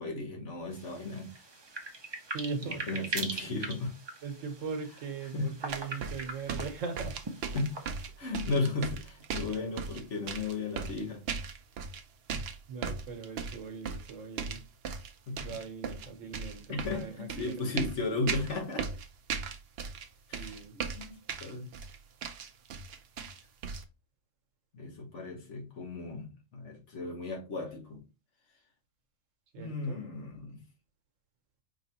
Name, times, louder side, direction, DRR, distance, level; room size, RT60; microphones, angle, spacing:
voice 1, 0.0-1.3 2.6-3.9 5.3-5.5 7.5-7.7 8.2-11.2 15.3-15.4 16.7-18.9 20.3-21.7 24.7-28.0 29.6-30.6, left 3 dB, 65° left, 1.4 m, -35 dB
sound 1, 0.7-8.1, right 2 dB, 30° right, 0.5 m, -41 dB
voice 2, 2.3-3.0 4.2-7.2 12.3-14.6 15.4-17.8 20.3-20.8 29.5-30.0, right 5 dB, 75° right, 1.3 m, -40 dB
sound 2, 5.7-12.0 12.3-15.1 15.4-20.1 20.3-23.8, right 5 dB, 60° right, 0.7 m, -37 dB
5.1 x 3.0 x 2.8 m
omnidirectional pair, 1.3 m